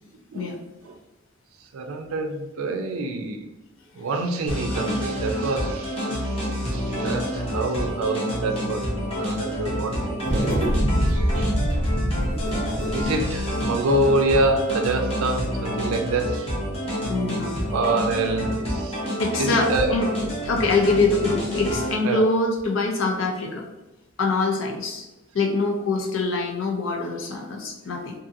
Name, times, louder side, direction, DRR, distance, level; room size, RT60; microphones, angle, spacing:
voice 1, 1.7-3.5 4.0-10.3 10.8-11.5 12.9-16.5 17.7-19.0 19.4-20.0 22.0-22.3 25.5-25.6, right 2 dB, 90° right, 6 dB, 0.4 m, -26 dB
sound 1, 4.5-21.9, equal, 30° left, 0.7 m, -28 dB
sound 2, 10.2-14.9, equal, 40° right, 0.5 m, -25 dB
voice 2, 17.1-17.6 19.2-20.1 20.4-23.7 24.2-25.0 25.3-28.1, left 3 dB, 70° left, 1 dB, 0.6 m, -24 dB
2.6 x 2.5 x 2.6 m, 0.99 s
head